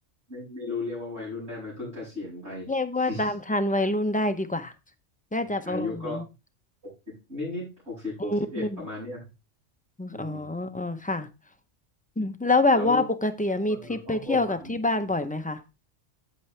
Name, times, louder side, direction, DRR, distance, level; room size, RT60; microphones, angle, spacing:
voice 1, 0.3-2.7 3.0-3.3 5.4-6.2 7.3-9.2 10.1-10.5 12.7-13.0 13.7-14.8, left 2 dB, 70° right, 6.8 m, -35 dB
voice 2, 2.7-4.7 5.3-6.2 8.2-8.8 10.0-11.3 12.2-15.6, left 2 dB, 10° left, 0.4 m, -26 dB
8.6 x 8.4 x 3.3 m
omnidirectional pair, 1.3 m